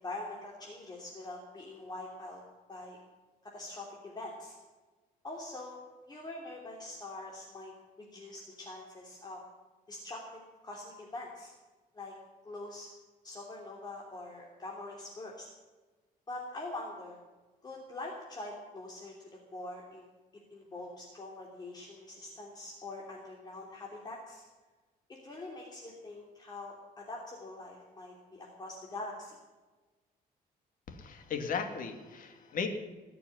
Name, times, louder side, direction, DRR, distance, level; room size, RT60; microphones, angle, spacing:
voice 1, 0.0-2.4 2.7-3.0 3.4-4.6 5.2-5.8 6.1-7.7 8.0-9.4 9.9-11.5 11.9-12.2 12.4-12.9 13.2-15.5 16.3-17.2 17.6-20.0 20.5-24.4 25.1-29.4, left 2 dB, 25° left, -2 dB, 3.0 m, -44 dB
voice 2, 30.9-32.7, left 6 dB, 60° left, 5 dB, 2.5 m, -36 dB
21.0 x 7.0 x 9.9 m, 1.3 s
cardioid pair, 125°, 16 cm